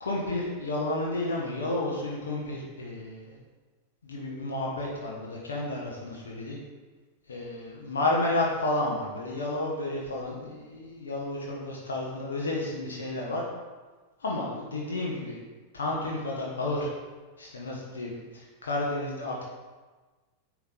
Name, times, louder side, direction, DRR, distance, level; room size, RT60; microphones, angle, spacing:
voice 1, 0.0-3.4 4.0-6.6 7.3-13.4 14.2-15.4 15.7-16.9 17.4-19.4, left 2 dB, 70° left, -3 dB, 0.9 m, -31 dB
8.7 x 3.1 x 3.8 m, 1.3 s
figure-of-eight pair, 90°, 0 cm